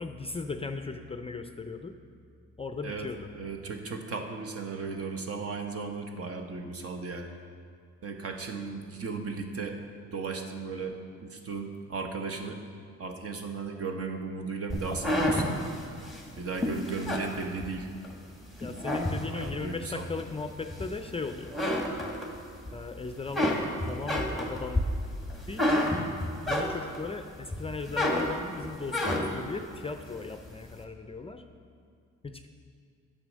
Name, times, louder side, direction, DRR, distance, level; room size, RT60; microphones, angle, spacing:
voice 1, 0.0-2.0 2.6-3.3 18.6-21.6 22.7-24.8 25.5-25.9 26.4-31.4 32.2-32.5, left 4 dB, 20° left, 7 dB, 0.5 m, -37 dB
voice 2, 2.8-7.3 8.0-9.8 10.1-12.6 13.0-15.6 16.4-17.9 19.3-20.0, right 4 dB, 50° right, 4 dB, 1.1 m, -36 dB
sound 1, 14.7-18.1 18.5-19.6 20.2-21.1 21.4-22.7 23.0-27.1 27.5-29.5, left 1 dB, ahead, 1.6 m, -29 dB
8.8 x 7.0 x 6.3 m, 2.3 s
cardioid pair, 90°, 30 cm